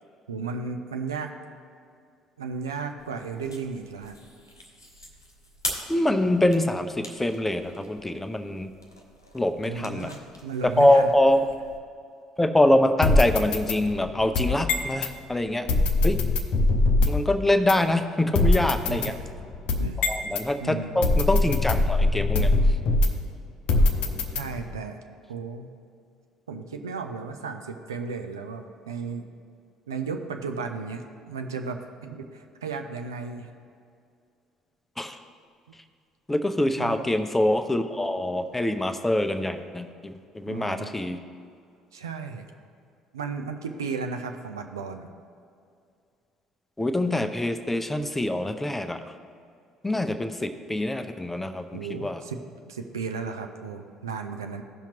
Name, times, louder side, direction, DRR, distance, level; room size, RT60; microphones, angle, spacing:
voice 1, 0.3-1.3 2.4-4.2 9.7-11.1 18.9-19.3 19.8-20.1 20.6-21.1 24.3-25.0 25.3-25.7 26.5-29.3 29.9-33.5 36.8-37.0 40.5-40.9 41.9-42.5 43.1-45.1 51.7-54.6, right 5 dB, 75° right, 5 dB, 0.5 m, -34 dB
sound 1, 3.0-11.8, left 1 dB, 90° left, 0.6 m, -42 dB
voice 2, 5.9-8.7 9.3-10.1 10.6-11.4 12.4-15.7 16.0-16.2 17.1-19.1 20.1-22.5 35.0-35.2 36.3-41.2 46.8-49.0 49.8-52.2, left 1 dB, 10° left, 8 dB, 0.6 m, -24 dB
sound 2, 13.0-15.1 15.7-17.3 17.7-17.8 18.3-20.5 21.0-23.3 23.7-24.8, left 2 dB, 50° left, 0.7 m, -23 dB
15.5 x 5.8 x 2.9 m, 2.4 s
figure-of-eight pair, 55°, 2 cm